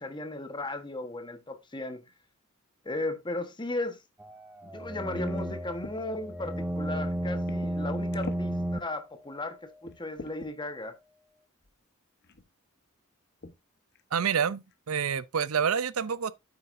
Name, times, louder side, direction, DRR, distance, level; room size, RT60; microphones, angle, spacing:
voice 1, 0.0-2.0 2.8-4.0 4.6-9.6 9.8-10.9, left 2 dB, 20° left, 1.2 m, -36 dB
sound 1, 4.2-8.8, right 1 dB, 5° right, 0.5 m, -33 dB
sound 2, 5.1-6.0 6.7-6.8 7.5-7.8 8.1-8.5 9.1-9.2 9.8-10.5 11.6-11.7 12.2-12.5 13.4-13.6 14.0-14.1 14.4-14.7, left 2 dB, 50° left, 0.9 m, -44 dB
voice 2, 14.1-16.3, right 7 dB, 75° right, 0.6 m, -28 dB
9.6 x 8.0 x 2.6 m
head